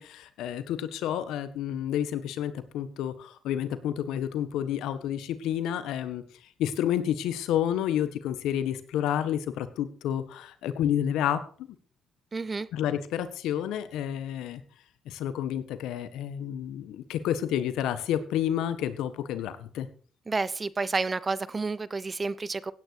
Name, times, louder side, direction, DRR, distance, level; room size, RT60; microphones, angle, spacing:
voice 1, 0.0-6.2 6.6-11.4 12.7-14.6 15.0-19.9, left 10 dB, 90° left, 1.5 m, -30 dB
voice 2, 12.3-12.7 20.3-22.7, right 3 dB, 30° right, 0.9 m, -30 dB
16.0 x 9.7 x 4.8 m
cardioid pair, 90°, 0 cm